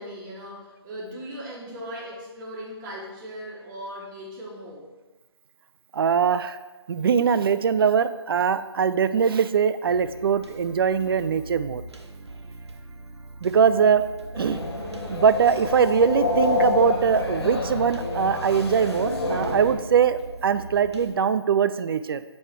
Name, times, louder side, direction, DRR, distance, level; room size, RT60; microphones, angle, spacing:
voice 1, 0.0-4.9, equal, 20° right, -8 dB, 1.3 m, -38 dB
voice 2, 5.9-6.6 6.9-11.8 13.4-14.0 14.4-14.6 15.1-22.2, right 7 dB, 60° right, 12 dB, 0.4 m, -22 dB
sound 1, 9.8-21.1, right 2 dB, 80° right, 0.9 m, -42 dB
sound 2, 14.3-19.7, left 2 dB, 70° left, 1.8 m, -27 dB
8.0 x 3.2 x 4.4 m, 1.2 s
hypercardioid pair, 155°, 14 cm